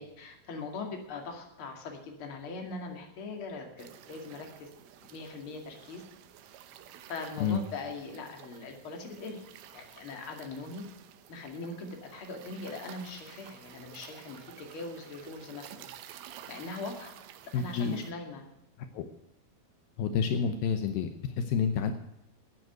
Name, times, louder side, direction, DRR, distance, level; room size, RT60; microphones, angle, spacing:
voice 1, 0.0-4.7 5.1-6.0 7.1-9.4 9.7-10.8 11.3-15.9 16.5-17.1 17.5-18.4, left 3 dB, 40° left, 2 dB, 2.7 m, -41 dB
sound 1, 3.8-18.1, right 11 dB, 80° right, 2.7 m, -52 dB
voice 2, 17.5-18.0 18.9-19.1 20.0-21.9, left 6 dB, 75° left, 7 dB, 2.6 m, -29 dB
12.0 x 9.2 x 9.2 m, 0.83 s
omnidirectional pair, 4.4 m